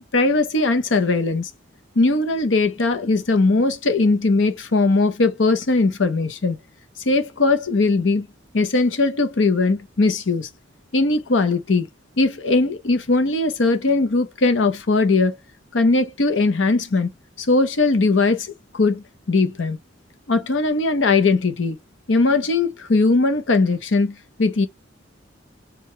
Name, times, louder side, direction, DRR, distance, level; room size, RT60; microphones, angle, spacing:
voice 1, 0.0-1.5 2.0-6.6 7.1-8.3 8.5-10.5 10.9-11.9 12.2-15.4 15.7-17.1 17.4-19.8 20.3-21.8 22.1-24.7, left 3 dB, 85° left, 0.8 m, -19 dB
4.8 x 2.4 x 3.1 m
head